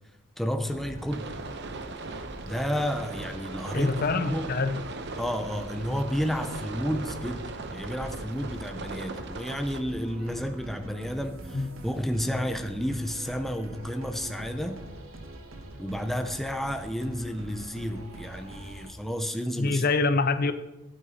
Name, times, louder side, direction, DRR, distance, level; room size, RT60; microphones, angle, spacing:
voice 1, 0.4-1.3 2.4-3.9 4.3-4.5 5.2-14.8 15.8-19.8, equal, ahead, 0.6 m, -31 dB
sound 1, 0.7-18.9, right 1 dB, 85° right, 1.7 m, -44 dB
sound 2, 1.1-9.8, right 3 dB, 55° right, 0.9 m, -39 dB
voice 2, 3.7-4.8 11.5-11.7 19.6-20.5, left 3 dB, 45° left, 0.6 m, -25 dB
11.5 x 8.8 x 4.2 m
head